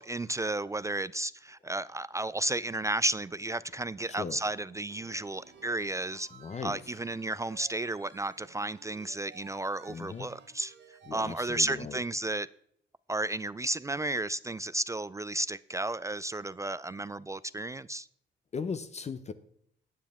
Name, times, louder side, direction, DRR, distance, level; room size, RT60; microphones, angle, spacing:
voice 1, 0.0-6.3 6.6-10.7 11.1-12.5 13.1-18.1, right 2 dB, 15° right, 0.3 m, -33 dB
sound 1, 2.2-8.6, left 2 dB, 80° left, 4.8 m, -63 dB
sound 2, 4.9-11.8, right 7 dB, 60° right, 1.5 m, -55 dB
voice 2, 6.3-6.8 9.9-10.3 11.1-12.0 18.5-19.3, left 5 dB, 35° left, 0.7 m, -37 dB
14.5 x 9.2 x 3.5 m
cardioid pair, 90°, 20 cm